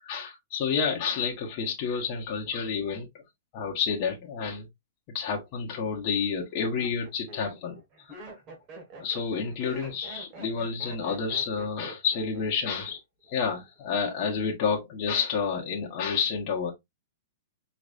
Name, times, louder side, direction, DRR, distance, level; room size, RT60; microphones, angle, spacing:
voice 1, 0.0-3.1 3.5-4.7 5.1-7.8 8.1-8.2 9.0-13.0 13.3-16.7, left 6 dB, 40° left, 1.2 m, -29 dB
Laughter, 5.6-5.7 6.4-13.0 13.2-13.8, right 2 dB, 30° right, 1.7 m, -46 dB
4.8 x 3.2 x 2.6 m
hypercardioid pair, 150°, 0 cm